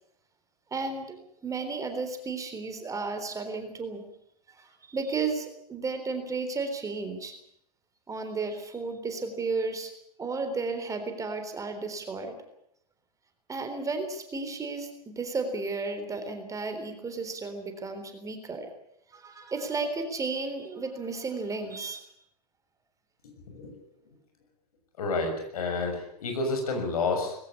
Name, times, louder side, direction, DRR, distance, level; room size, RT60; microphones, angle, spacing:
voice 1, 0.7-4.1 4.5-7.3 8.1-9.9 10.2-12.3 13.5-18.7 19.1-22.1, right 4 dB, 15° right, 6 dB, 3.8 m, -33 dB
voice 2, 25.0-27.4, left 3 dB, 65° left, 4 dB, 6.6 m, -29 dB
20.5 x 16.5 x 9.7 m, 0.73 s
figure-of-eight pair, 95°, 20 cm